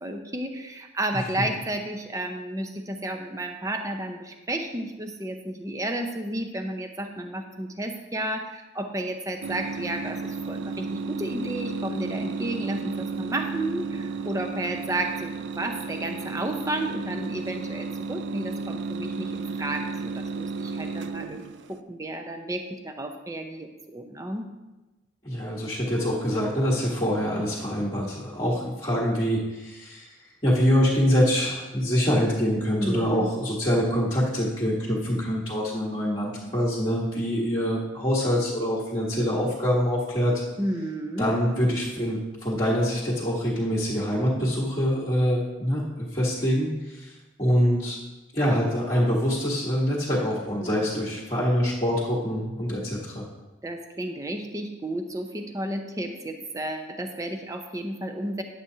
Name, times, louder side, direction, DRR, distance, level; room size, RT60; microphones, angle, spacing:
voice 1, 0.0-24.5 32.8-33.3 40.6-41.3 50.6-51.2 53.6-58.4, right 1 dB, 15° right, 5 dB, 0.6 m, -32 dB
sound 1, 9.4-21.8, right 4 dB, 65° right, 0.4 m, -33 dB
voice 2, 25.2-30.1 30.4-40.4 41.2-48.0 48.3-53.3, equal, 25° left, -8 dB, 1.3 m, -25 dB
10.0 x 7.6 x 2.8 m, 1.1 s
head